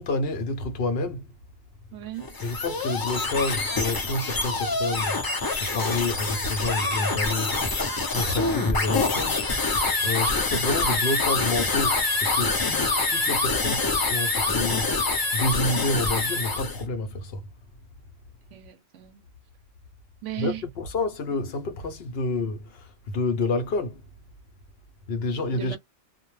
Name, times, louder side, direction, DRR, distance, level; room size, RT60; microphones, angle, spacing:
voice 1, 0.0-1.3 2.4-7.8 8.1-9.6 10.0-15.0 15.3-17.5 20.4-24.0 25.1-25.8, left 2 dB, 60° left, 0.7 m, -29 dB
voice 2, 1.9-2.4 18.5-19.3 20.2-20.6 25.5-25.8, right 14 dB, 80° right, 0.9 m, -36 dB
sound 1, 2.2-16.8, left 3 dB, 40° left, 0.3 m, -26 dB
2.2 x 2.1 x 3.0 m
omnidirectional pair, 1.3 m